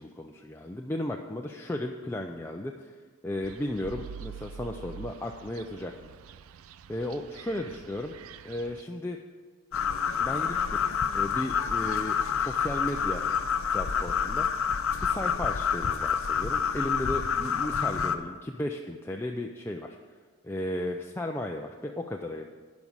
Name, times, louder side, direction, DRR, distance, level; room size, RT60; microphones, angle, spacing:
voice 1, 0.0-6.1 6.9-8.2 8.4-9.2 10.2-10.9 11.1-13.3 13.7-14.5 15.0-20.0 20.4-22.4, left 1 dB, 10° left, 2 dB, 0.3 m, -35 dB
sound 1, 3.4-8.8, right 7 dB, 75° right, 0.4 m, -46 dB
sound 2, 9.7-18.2, left 6 dB, 75° left, 0.6 m, -28 dB
11.0 x 5.3 x 7.1 m, 1.5 s
head